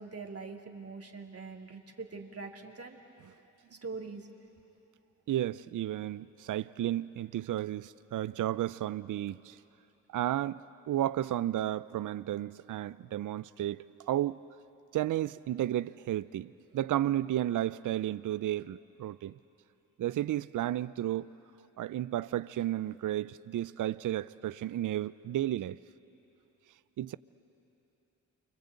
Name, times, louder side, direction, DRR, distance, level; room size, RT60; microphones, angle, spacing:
voice 1, 0.0-3.0 3.7-4.3, right 4 dB, 40° right, 1 dB, 3.0 m, -43 dB
voice 2, 5.3-9.6 10.1-14.4 14.9-19.3 20.0-21.3 21.8-25.8 27.0-27.2, right 13 dB, 55° right, 17 dB, 0.6 m, -33 dB
29.5 x 24.5 x 8.3 m, 2.9 s
hypercardioid pair, 45°, 37 cm